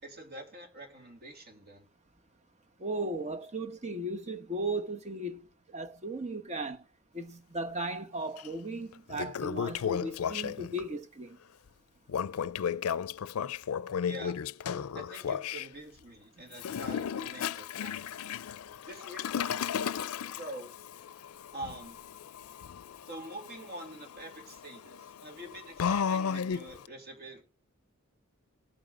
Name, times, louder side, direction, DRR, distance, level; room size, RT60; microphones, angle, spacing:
voice 1, 0.0-1.9 14.1-14.4 14.9-18.1 18.8-19.7 20.4-20.7 21.5-22.0 23.0-27.4, right 1 dB, 50° right, 2.9 m, -45 dB
voice 2, 2.8-5.5 5.7-6.8 7.1-11.4, right 1 dB, 35° right, 1.1 m, -36 dB
Toilet flush, 8.4-8.5 8.9-10.8 12.1-15.7 16.5-26.9, left 7 dB, 85° left, 0.4 m, -34 dB
19.5 x 8.7 x 2.5 m
head